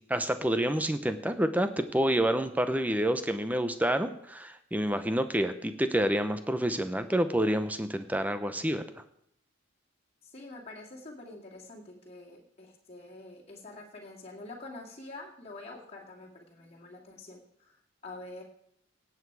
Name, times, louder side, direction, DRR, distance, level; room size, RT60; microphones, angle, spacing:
voice 1, 0.1-8.8, right 1 dB, 10° right, 10 dB, 0.7 m, -28 dB
voice 2, 10.2-17.8 18.0-18.4, left 2 dB, 30° left, -3 dB, 2.3 m, -46 dB
16.5 x 8.2 x 4.7 m, 0.73 s
head